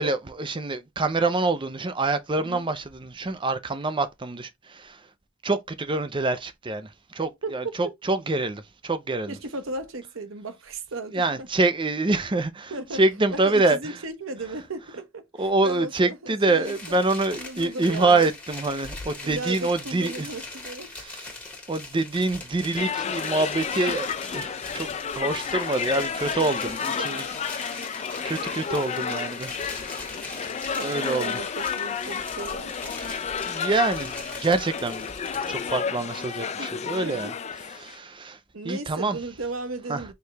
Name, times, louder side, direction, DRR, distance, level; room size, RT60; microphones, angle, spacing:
voice 1, 0.0-5.1 5.4-9.4 11.1-14.0 15.4-20.3 21.0-21.3 21.7-24.1 24.3-24.9 25.2-27.2 27.5-27.7 28.2-29.8 30.3-30.5 30.8-31.4 33.0-33.1 33.4-37.3 37.8-38.4 38.6-39.2 39.9-40.0, right 2 dB, 25° right, 0.6 m, -26 dB
voice 2, 9.3-11.5 12.7-13.0 13.3-17.0 17.3-18.3 19.2-20.9 26.4-26.7 27.0-27.4 28.7-28.8 30.4-32.9 36.6-36.8 37.0-37.3 38.0-38.1 38.5-40.1, right 2 dB, 85° right, 0.9 m, -36 dB
sound 1, 16.6-35.8, left 2 dB, 10° left, 1.9 m, -41 dB
sound 2, 22.8-38.0, left 6 dB, 35° left, 0.4 m, -31 dB
4.6 x 3.2 x 3.3 m
head